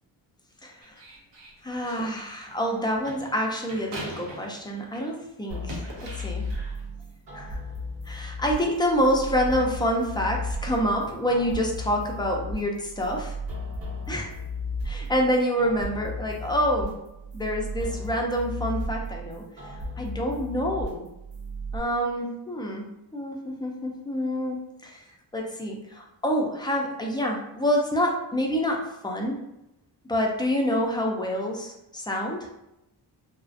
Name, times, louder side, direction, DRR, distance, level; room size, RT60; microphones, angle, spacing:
voice 1, 0.6-0.9 1.6-6.5 7.3-7.6 8.1-13.3 14.1-14.3 14.8-16.9 17.3-19.4 20.0-21.0 21.7-22.9 23.1-25.0 25.3-29.4 30.1-32.5, equal, 10° left, 0 dB, 0.3 m, -27 dB
sound 1, 0.8-5.2 5.5-6.8, right 1 dB, 85° right, 0.8 m, -42 dB
sound 2, 5.5-21.8, left 1 dB, 55° right, 0.9 m, -35 dB
2.4 x 2.0 x 2.5 m, 0.88 s
cardioid pair, 95°, 43 cm